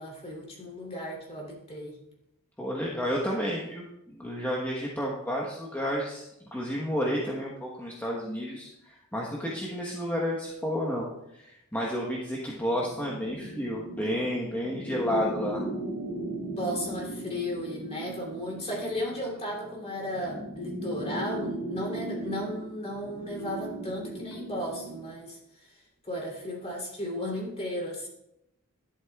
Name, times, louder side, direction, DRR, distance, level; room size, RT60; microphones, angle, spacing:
voice 1, 0.0-2.0 16.4-25.7 26.0-28.1, left 1 dB, 30° left, -2 dB, 3.0 m, -35 dB
voice 2, 2.6-11.1 11.3-15.6, equal, 10° left, -3 dB, 1.1 m, -31 dB
sound 1, 12.7-25.1, right 1 dB, 85° left, 2.2 m, -37 dB
11.5 x 11.5 x 2.4 m, 0.84 s
head